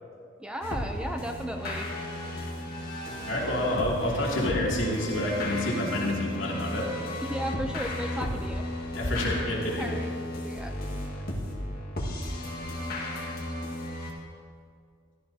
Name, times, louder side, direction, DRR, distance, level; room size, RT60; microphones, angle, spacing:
voice 1, 0.4-1.9 7.2-8.6 9.7-10.1 10.4-10.7, equal, 5° right, 4 dB, 0.5 m, -35 dB
sound 1, 0.6-14.1, left 1 dB, 50° left, 1.7 m, -34 dB
voice 2, 3.2-6.9 8.9-9.8, left 1 dB, 70° left, -4 dB, 2.5 m, -28 dB
16.0 x 12.5 x 2.8 m, 2.2 s
head